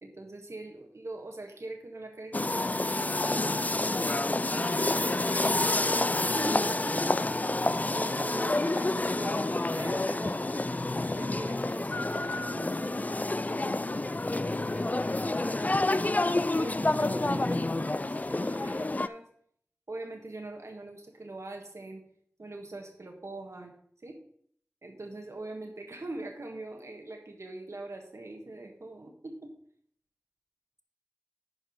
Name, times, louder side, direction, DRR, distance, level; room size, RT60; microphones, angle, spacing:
voice 1, 0.0-3.8 4.5-6.1 6.3-7.6 7.9-10.4 11.2-13.3 16.6-19.3 19.9-22.0 22.4-23.7 24.0-24.2 24.8-29.5, right 2 dB, 80° right, 2 dB, 1.6 m, -42 dB
sound 1, 2.3-19.1, left 2 dB, 35° left, 0.3 m, -28 dB
voice 2, 14.3-15.9, equal, 5° left, 7 dB, 1.1 m, -43 dB
10.5 x 4.8 x 5.2 m, 0.63 s
wide cardioid pair, 45°, 5 cm